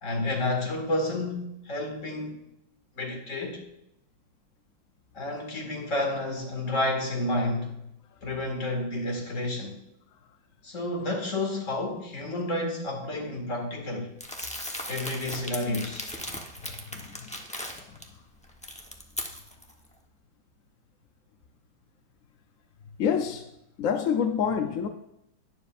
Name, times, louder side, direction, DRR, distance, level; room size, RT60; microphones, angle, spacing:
voice 1, 0.0-2.4 3.0-3.6 5.1-7.8 8.2-9.8 10.6-14.1 14.9-16.1, left 1 dB, 40° left, 2.3 m, -30 dB
Crumpling crinkling, 14.2-18.0 18.4-19.7, left 1 dB, 5° left, 0.5 m, -37 dB
voice 2, 16.6-17.4 17.8-18.2 23.0-23.5 23.8-24.9, left 7 dB, 65° left, 0.8 m, -29 dB
20.0 x 7.2 x 2.5 m
omnidirectional pair, 2.1 m